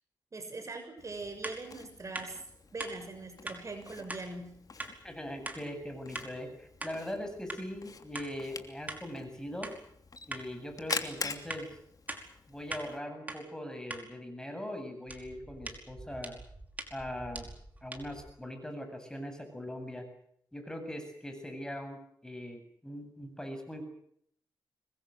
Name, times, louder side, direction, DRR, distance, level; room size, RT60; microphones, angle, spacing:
voice 1, 0.3-2.4 2.7-4.5, right 3 dB, 40° right, 6 dB, 6.6 m, -41 dB
Camera, 1.0-13.0, left 4 dB, 50° left, 3.0 m, -45 dB
sound 1, 1.4-1.6 2.1-2.3 2.8-2.9 3.5-3.6 4.1-4.2 4.8-4.9 5.5-5.6 6.2-6.3 6.8-7.0 7.5-7.6 8.1-8.3 8.9-9.0 9.6-9.8 10.3-10.4 10.9-11.0 11.5-11.6 12.1-12.2 12.7-12.9 13.3-13.4 13.9-14.0 15.1-18.3, right 2 dB, 20° right, 5.2 m, -41 dB
voice 2, 5.0-9.7 10.3-11.7 12.5-16.4 16.9-17.5 17.8-20.1 20.5-23.8, equal, 10° left, 6 dB, 7.9 m, -41 dB
26.0 x 21.5 x 7.9 m, 0.69 s
cardioid pair, 85°, 8 cm